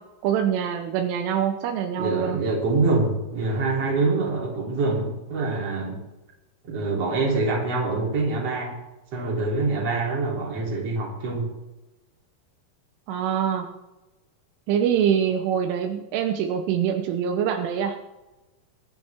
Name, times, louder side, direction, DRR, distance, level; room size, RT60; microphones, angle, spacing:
voice 1, 0.2-2.4 13.1-13.7 14.7-18.0, right 8 dB, 80° right, 5 dB, 3.3 m, -24 dB
voice 2, 2.0-6.0 6.6-8.8 9.1-11.5, right 3 dB, 35° right, -3 dB, 3.8 m, -25 dB
23.5 x 9.5 x 3.6 m, 1.0 s
omnidirectional pair, 5.7 m